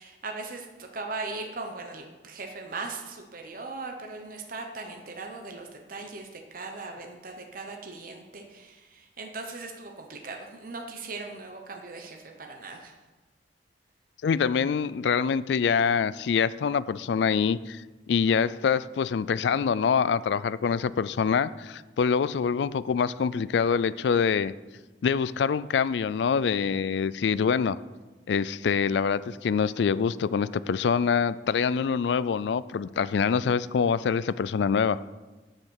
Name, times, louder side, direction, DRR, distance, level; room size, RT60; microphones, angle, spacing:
voice 1, 0.0-12.9, right 3 dB, 50° right, 3 dB, 1.0 m, -39 dB
voice 2, 14.2-24.5 25.0-27.8 28.3-35.0, left 6 dB, 70° left, 17 dB, 0.3 m, -25 dB
7.6 x 7.4 x 6.4 m, 1.2 s
head